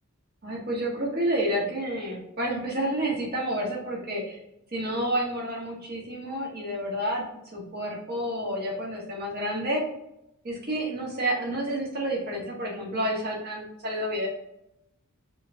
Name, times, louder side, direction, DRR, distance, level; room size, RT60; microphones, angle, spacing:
voice 1, 0.4-4.4 4.7-7.2 7.5-9.8 10.4-14.3, right 1 dB, 45° right, -3 dB, 1.5 m, -29 dB
5.0 x 3.5 x 2.8 m, 0.83 s
head